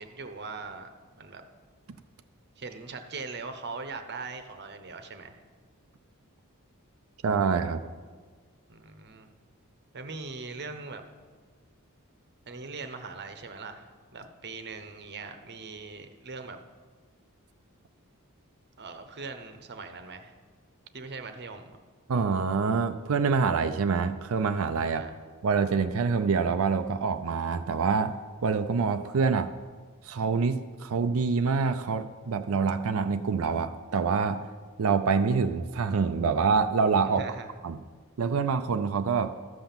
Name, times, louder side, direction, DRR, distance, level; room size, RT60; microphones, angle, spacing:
voice 1, 0.0-1.4 2.6-5.4 8.7-9.3 9.9-11.0 12.5-16.6 18.8-20.3 20.9-21.8 24.8-25.1 37.1-37.5, right 4 dB, 50° right, 8 dB, 0.9 m, -41 dB
voice 2, 7.2-7.8 22.1-25.0 25.4-28.1 28.4-29.5 30.1-34.4 34.8-37.2 37.6-37.8 38.2-39.3, right 5 dB, 70° right, 8 dB, 0.5 m, -26 dB
13.5 x 5.9 x 7.1 m, 1.5 s
head